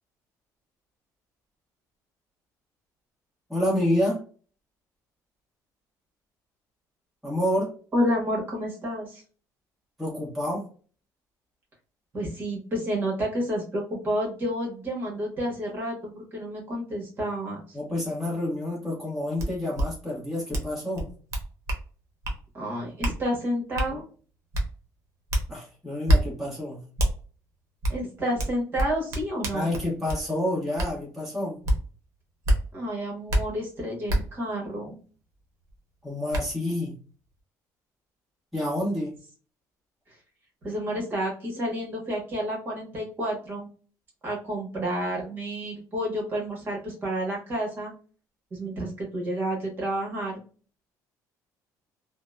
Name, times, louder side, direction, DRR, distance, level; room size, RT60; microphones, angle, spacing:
voice 1, 3.5-4.2 7.2-7.8 10.0-10.7 17.7-21.1 25.5-26.8 29.5-31.6 36.0-37.0 38.5-39.2, left 1 dB, ahead, -6 dB, 1.0 m, -28 dB
voice 2, 7.9-9.2 12.1-17.8 22.5-24.0 27.9-29.7 32.7-35.0 40.6-43.7 44.2-47.9 48.5-50.4, equal, 30° right, -1 dB, 1.2 m, -30 dB
sound 1, 19.4-19.5 19.7-19.9 20.5-20.7 20.9-21.8 22.2-22.4 23.0-23.2 23.8-23.9 24.5-24.7 25.3-25.4 26.1-26.2 27.0-27.1 27.8-28.0 28.4-30.2 30.8-30.9 31.6-31.8 32.4-32.6 33.3-33.4 34.1-34.2 35.7-35.8 36.3-36.4, right 1 dB, 45° right, 0.8 m, -24 dB
2.7 x 2.1 x 2.3 m, 0.40 s
cardioid pair, 155°, 7 cm